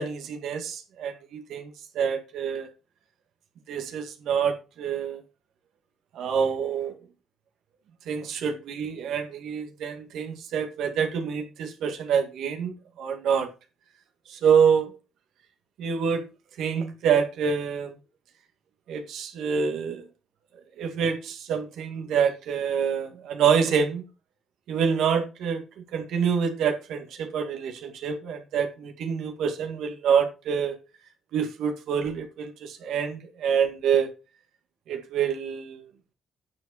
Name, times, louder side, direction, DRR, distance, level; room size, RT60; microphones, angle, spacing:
voice 1, 0.0-2.7 3.7-5.2 6.1-6.9 8.1-13.5 14.3-14.9 15.8-16.2 16.6-17.9 18.9-20.0 20.8-24.0 24.7-25.6 25.9-30.8 31.3-34.1 34.9-35.8, right 7 dB, 80° right, 2.0 m, -26 dB
9.6 x 7.2 x 4.2 m
cardioid pair, 90°, 0 cm